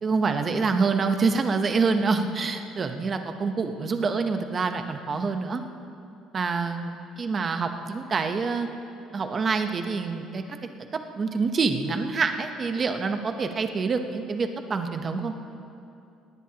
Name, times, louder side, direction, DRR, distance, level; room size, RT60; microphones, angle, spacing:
voice 1, 0.0-5.6 6.3-8.7 9.1-10.4 11.2-15.3, right 4 dB, 25° right, 7 dB, 0.8 m, -26 dB
19.0 x 18.0 x 2.9 m, 2.6 s
cardioid pair, 160°, 0 cm